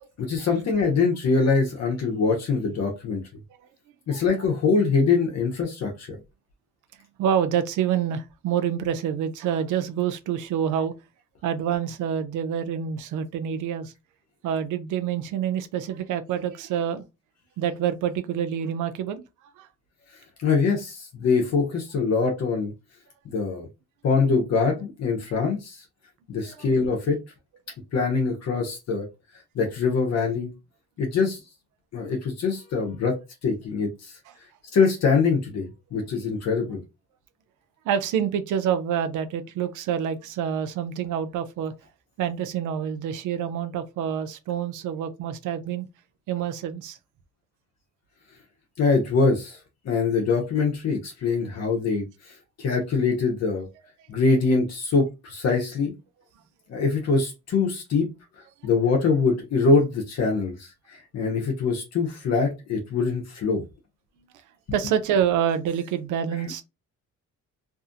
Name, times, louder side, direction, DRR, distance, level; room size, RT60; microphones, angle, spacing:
voice 1, 0.2-3.2 4.1-6.2 20.4-22.7 23.3-23.7 24.0-25.8 26.3-27.2 27.9-29.1 29.5-30.5 31.0-31.4 31.9-33.2 33.4-34.2 34.7-36.8 48.8-49.6 49.8-53.7 54.1-55.9 56.7-58.1 58.6-63.6 66.3-66.4, left 4 dB, 60° left, 0.9 m, -23 dB
voice 2, 7.2-10.9 11.4-13.9 14.4-17.0 17.6-19.2 19.6-19.7 26.5-26.6 37.9-41.7 42.2-45.9 46.3-47.0 64.7-66.6, right 8 dB, 80° right, 0.5 m, -27 dB
2.7 x 2.4 x 2.5 m
cardioid pair, 90°, 30 cm